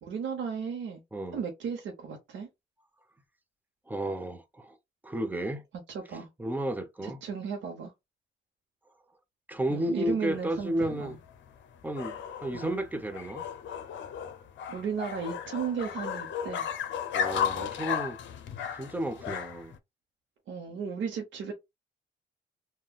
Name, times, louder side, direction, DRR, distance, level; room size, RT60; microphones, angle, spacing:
voice 1, 0.0-1.0 1.3-2.5 5.9-6.3 7.0-7.9 9.7-11.2 12.5-12.7 14.7-16.7 20.5-21.5, right 6 dB, 75° right, 0.8 m, -35 dB
voice 2, 3.9-4.8 5.0-5.6 6.4-7.2 9.5-11.2 11.8-13.4 17.1-18.2 18.8-19.8, right 1 dB, 10° right, 0.7 m, -32 dB
sound 1, 10.3-19.8, left 8 dB, 70° left, 0.6 m, -35 dB
3.6 x 2.2 x 2.3 m
cardioid pair, 90°, 20 cm